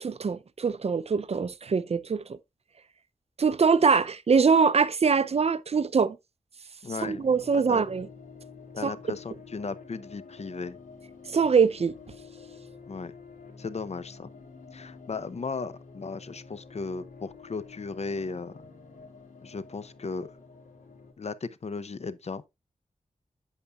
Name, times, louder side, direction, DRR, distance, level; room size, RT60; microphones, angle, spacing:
voice 1, 0.0-2.2 3.4-6.2 7.0-8.1 8.8-8.9 11.3-11.9, right 5 dB, 50° right, 0.5 m, -23 dB
voice 2, 6.8-7.2 7.5-7.8 8.8-10.8 12.9-13.1 13.6-14.3 14.7-18.5 19.4-20.3 21.2-22.4, left 4 dB, 55° left, 0.7 m, -36 dB
sound 1, 6.9-21.1, left 5 dB, 85° left, 2.2 m, -49 dB
8.3 x 8.1 x 2.4 m
wide cardioid pair, 105°, 13 cm